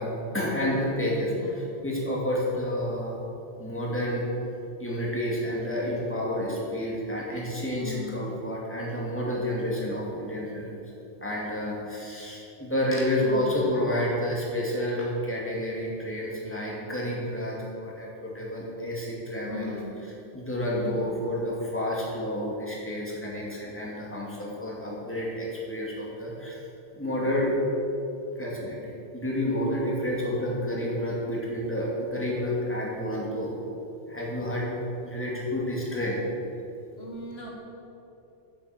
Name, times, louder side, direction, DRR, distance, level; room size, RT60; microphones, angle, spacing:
voice 1, 0.0-3.2 3.6-4.2 4.8-10.8 11.2-19.8 20.3-26.6 27.0-27.5 28.4-33.5 34.1-36.2, left 1 dB, 10° left, -5 dB, 2.5 m, -30 dB
voice 2, 1.2-1.7 7.7-8.3 13.2-13.7 19.4-19.9 20.7-21.1 27.1-27.4 37.0-37.5, left 3 dB, 60° left, -2 dB, 1.8 m, -39 dB
9.9 x 7.8 x 7.8 m, 2.8 s
omnidirectional pair, 1.2 m